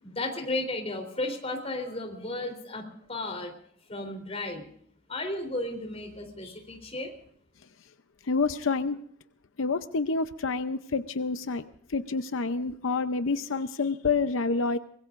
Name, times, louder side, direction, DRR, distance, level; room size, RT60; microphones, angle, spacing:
voice 1, 0.0-3.5 3.9-4.7 5.1-7.1, left 2 dB, 30° left, 5 dB, 3.6 m, -34 dB
voice 2, 8.3-9.0 9.6-11.6 11.9-14.8, left 4 dB, 90° left, 10 dB, 0.7 m, -28 dB
24.5 x 21.0 x 2.6 m, 0.63 s
head